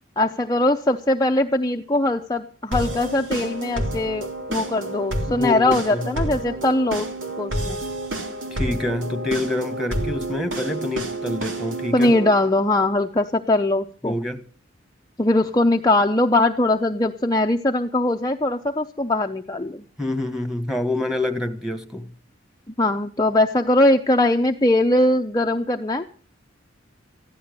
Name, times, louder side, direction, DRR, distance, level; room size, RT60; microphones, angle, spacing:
voice 1, 0.2-7.1 7.4-7.8 11.9-14.1 15.2-19.8 22.8-26.0, left 1 dB, 20° left, 0.6 m, -21 dB
sound 1, 2.7-12.3, right 1 dB, 85° right, 3.2 m, -29 dB
voice 2, 5.3-6.1 8.5-12.1 14.0-14.4 20.0-22.1, left 2 dB, ahead, 1.6 m, -27 dB
15.0 x 11.5 x 6.7 m
head